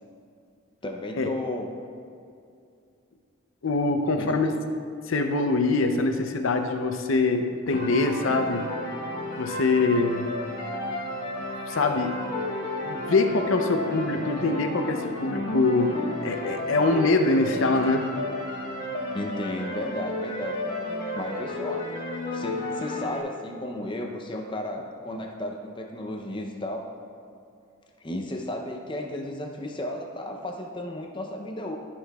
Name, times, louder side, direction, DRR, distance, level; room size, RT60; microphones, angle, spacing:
voice 1, 0.8-1.7 4.2-4.4 19.1-20.8 21.1-21.9 22.3-26.9 28.0-31.8, left 1 dB, 25° left, 2 dB, 0.6 m, -34 dB
voice 2, 3.6-4.5 5.1-8.7 9.4-10.3 11.7-12.1 12.8-18.1, left 3 dB, 70° left, 6 dB, 0.6 m, -24 dB
sound 1, 7.7-23.2, left 1 dB, 40° left, 1.8 m, -33 dB
12.5 x 5.8 x 2.3 m, 2.4 s
head